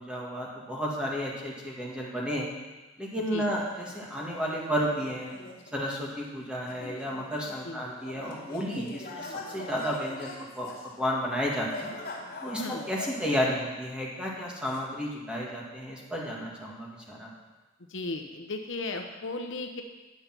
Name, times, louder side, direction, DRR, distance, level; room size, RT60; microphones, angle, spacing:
voice 1, 0.0-2.5 3.0-5.3 5.7-10.7 11.0-11.9 12.4-17.3, equal, 5° right, -4 dB, 2.0 m, -32 dB
sound 1, 3.7-13.4, left 2 dB, 50° left, 2.2 m, -43 dB
voice 2, 12.6-12.9 17.9-19.8, left 2 dB, 70° left, 4 dB, 0.8 m, -35 dB
10.0 x 6.8 x 6.0 m, 1.2 s
head